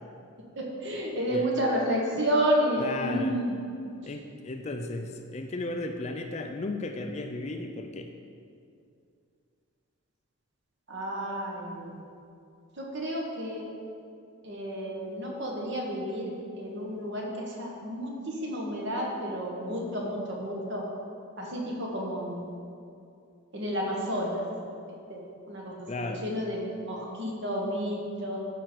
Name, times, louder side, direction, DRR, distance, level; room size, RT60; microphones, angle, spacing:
voice 1, 0.5-3.6 4.8-4.9 10.9-12.0 12.8-13.6 14.4-16.3 16.6-20.8 21.4-22.5 23.5-24.5 25.1-28.4, equal, 55° right, -2 dB, 1.6 m, -31 dB
voice 2, 2.8-3.4 4.0-8.1 25.9-26.2, left 2 dB, 30° left, 5 dB, 0.4 m, -35 dB
12.5 x 5.1 x 4.6 m, 2.5 s
head